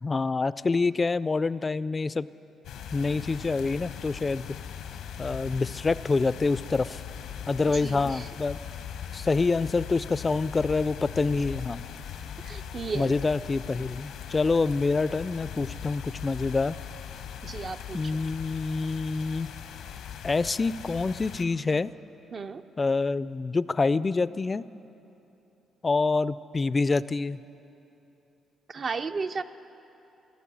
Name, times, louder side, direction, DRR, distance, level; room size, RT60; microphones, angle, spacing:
voice 1, 0.0-2.3 2.9-4.4 5.2-7.0 7.5-8.6 9.1-11.8 12.9-16.7 17.9-19.5 20.2-21.9 22.8-24.6 25.8-27.4, left 3 dB, 30° left, 17 dB, 0.3 m, -26 dB
sound 1, 2.6-21.4, left 8 dB, 85° left, 0.9 m, -40 dB
voice 2, 7.8-8.3 12.4-13.1 17.4-18.2 22.3-22.6 28.7-29.4, right 4 dB, 45° right, 8 dB, 0.4 m, -34 dB
14.5 x 11.0 x 8.5 m, 2.9 s
cardioid pair, 90°, 0 cm